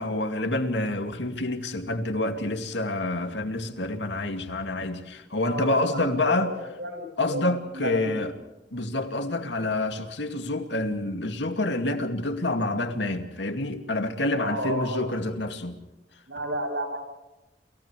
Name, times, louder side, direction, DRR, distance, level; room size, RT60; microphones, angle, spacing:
voice 1, 0.0-6.5 7.2-8.3 8.7-15.8, left 2 dB, 80° left, 2.4 m, -28 dB
voice 2, 5.4-8.2 14.3-15.2 16.3-17.0, equal, 85° right, 7.0 m, -32 dB
29.5 x 28.5 x 3.3 m
head